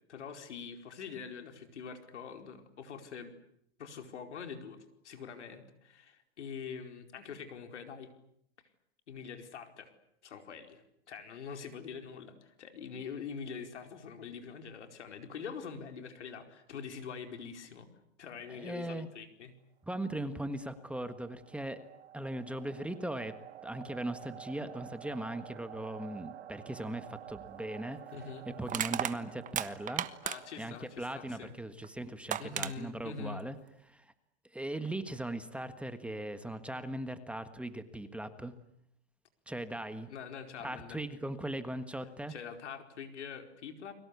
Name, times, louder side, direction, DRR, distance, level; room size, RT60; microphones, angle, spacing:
voice 1, 0.1-3.3 3.8-8.1 9.1-9.9 10.2-17.9 18.2-19.5 28.1-28.5 30.2-31.5 32.4-33.4 40.1-41.0 42.3-43.9, left 6 dB, 90° left, 6 dB, 4.7 m, -44 dB
voice 2, 18.5-19.1 19.9-21.8 22.1-23.4 23.6-28.0 28.6-30.1 30.6-33.6 33.9-34.1 34.5-38.5 39.5-40.1 40.6-42.3, right 1 dB, 5° right, 10 dB, 1.6 m, -39 dB
sound 1, 20.3-31.2, right 11 dB, 75° right, 2.1 m, -51 dB
Crushing, 27.3-27.5 28.7-30.6 31.8-31.9 32.3-32.7, right 11 dB, 25° right, 1.2 m, -34 dB
30.0 x 23.0 x 8.4 m, 0.73 s
hypercardioid pair, 130°, 34 cm